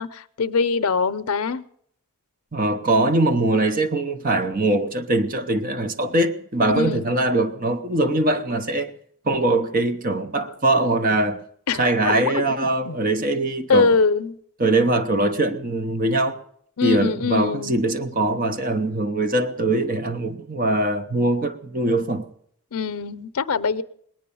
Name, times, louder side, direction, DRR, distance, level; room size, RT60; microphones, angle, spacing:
voice 1, 0.0-1.6 6.7-7.1 11.7-12.5 12.8-13.0 13.7-14.4 16.8-17.8 22.7-23.8, left 5 dB, 80° left, 0.6 m, -23 dB
voice 2, 2.5-8.9 9.2-11.4 11.8-13.9 14.6-16.4 16.8-22.3, right 2 dB, 40° right, 0.8 m, -22 dB
20.5 x 9.1 x 7.0 m
head